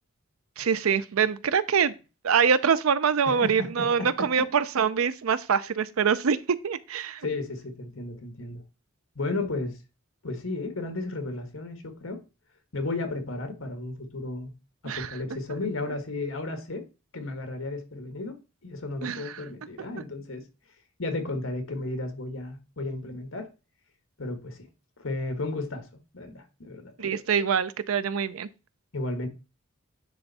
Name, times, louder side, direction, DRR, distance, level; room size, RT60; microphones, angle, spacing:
voice 1, 0.6-1.9 2.2-7.2 14.8-15.1 19.0-19.3 27.0-28.5, right 6 dB, 90° right, 0.5 m, -24 dB
voice 2, 3.2-4.5 7.2-8.6 9.1-9.8 10.2-12.2 12.7-14.5 14.8-16.8 17.1-18.4 18.6-20.4 21.0-23.5 24.2-24.7 25.0-25.8 26.1-26.9 28.9-29.3, left 2 dB, 75° left, 1.6 m, -33 dB
10.0 x 3.5 x 4.1 m
head